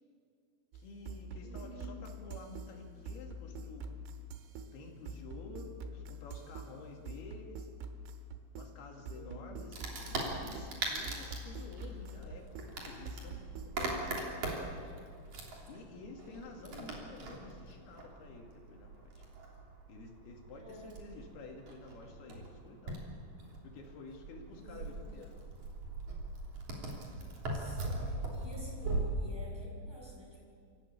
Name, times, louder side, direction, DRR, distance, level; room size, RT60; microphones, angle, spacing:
voice 1, 0.7-4.0 4.7-7.7 8.6-14.9 15.7-19.2 19.9-23.0 23.7-25.3, left 3 dB, 60° left, 1 dB, 4.1 m, -51 dB
sound 1, 0.7-14.1, right 2 dB, 90° right, 3.7 m, -46 dB
voice 2, 1.4-1.9 9.1-9.8 16.6-16.8 20.6-21.0 24.6-25.0 27.5-30.4, equal, 5° right, -3 dB, 6.5 m, -51 dB
Wood, 9.7-29.0, right 2 dB, 40° right, 4.1 m, -41 dB
27.5 x 15.5 x 8.4 m, 2.2 s
omnidirectional pair, 5.6 m